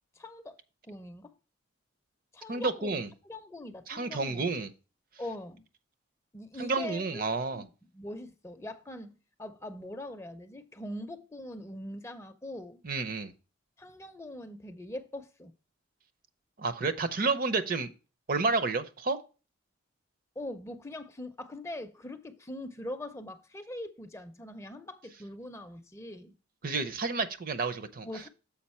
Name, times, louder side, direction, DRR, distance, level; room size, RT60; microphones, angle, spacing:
voice 1, 0.2-0.6 0.8-1.3 2.3-4.5 5.2-5.6 6.3-7.2 7.5-12.8 13.8-15.5 20.4-26.3 28.0-28.3, left 1 dB, 15° left, 0.5 m, -42 dB
voice 2, 2.5-3.1 3.9-4.7 6.6-7.6 12.8-13.3 16.6-17.9 18.3-19.2 26.6-28.1, right 4 dB, 45° right, 0.5 m, -30 dB
7.1 x 5.0 x 4.2 m
head